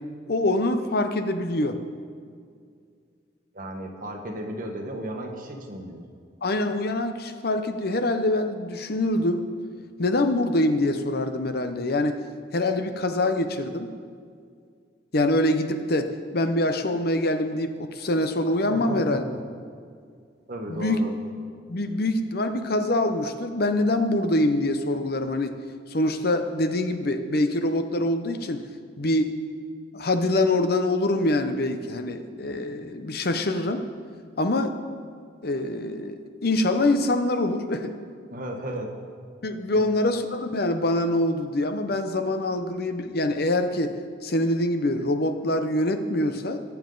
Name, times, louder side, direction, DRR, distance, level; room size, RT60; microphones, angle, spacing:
voice 1, 0.3-1.8 6.4-9.5 10.0-12.2 12.5-13.9 15.1-19.2 20.7-21.0 21.7-25.6 25.9-28.7 29.0-29.3 29.9-33.8 34.4-34.7 35.4-38.0 39.4-46.6, left 1 dB, 55° left, 8 dB, 0.8 m, -25 dB
voice 2, 3.5-6.0 18.7-19.4 20.5-21.1 38.3-38.9 39.7-39.8, right 1 dB, 50° right, 2 dB, 1.4 m, -34 dB
21.0 x 7.2 x 3.9 m, 2.2 s
head